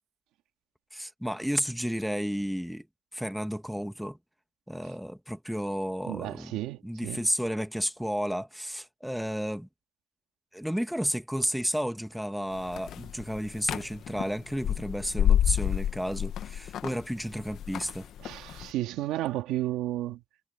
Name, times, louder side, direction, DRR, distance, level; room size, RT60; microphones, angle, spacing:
voice 1, 0.9-2.9 3.1-4.2 4.7-6.5 6.8-9.7 10.5-18.1, equal, ahead, 2.0 m, -32 dB
voice 2, 6.1-7.2 18.2-20.2, right 14 dB, 90° right, 2.2 m, -32 dB
sound 1, 12.6-18.7, left 10 dB, 75° left, 1.1 m, -29 dB
supercardioid pair, 55°, 0 cm